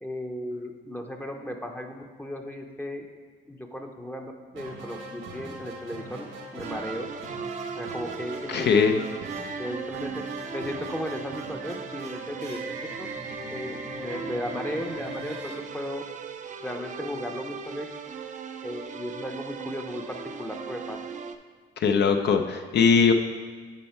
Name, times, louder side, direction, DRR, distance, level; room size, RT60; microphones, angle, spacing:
voice 1, 0.0-3.1 3.5-7.1 7.7-8.7 9.6-10.1 10.5-12.6 13.0-13.1 13.5-16.0 16.6-17.9 18.6-21.0, left 1 dB, 10° left, 3 dB, 0.7 m, -35 dB
sound 1, 4.5-16.4, right 3 dB, 85° right, 1.4 m, -41 dB
sound 2, 6.6-21.4, right 5 dB, 40° right, 0.5 m, -38 dB
voice 2, 8.5-9.0 21.8-23.1, left 6 dB, 60° left, 5 dB, 0.6 m, -20 dB
9.1 x 4.4 x 4.3 m, 1.5 s
cardioid pair, 90°, 20 cm